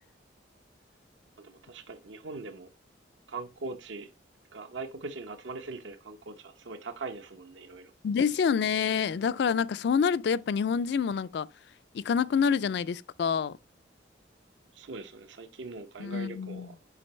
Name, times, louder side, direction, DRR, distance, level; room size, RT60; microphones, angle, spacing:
voice 1, 1.4-2.7 3.3-4.1 4.5-7.9 14.7-16.8, right 3 dB, 75° right, 0.7 m, -41 dB
voice 2, 8.0-11.5 11.9-13.6 16.0-16.7, left 6 dB, 60° left, 0.3 m, -27 dB
7.6 x 5.2 x 3.1 m
head